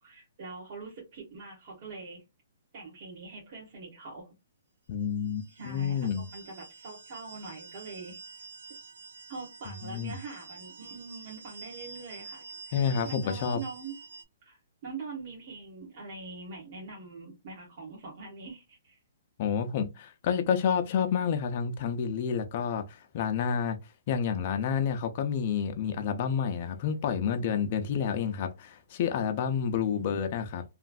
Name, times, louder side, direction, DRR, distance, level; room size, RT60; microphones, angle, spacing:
voice 1, 0.0-2.2 2.7-4.3 5.5-8.2 9.3-13.9 14.4-19.0, right 3 dB, 45° right, 1.3 m, -43 dB
voice 2, 4.9-6.3 9.8-10.1 12.7-13.6 19.4-23.8 24.1-30.6, left 7 dB, 45° left, 0.5 m, -29 dB
sound 1, 5.2-14.2, right 4 dB, 85° right, 0.8 m, -47 dB
3.1 x 2.5 x 2.3 m
hypercardioid pair, 155°, 0 cm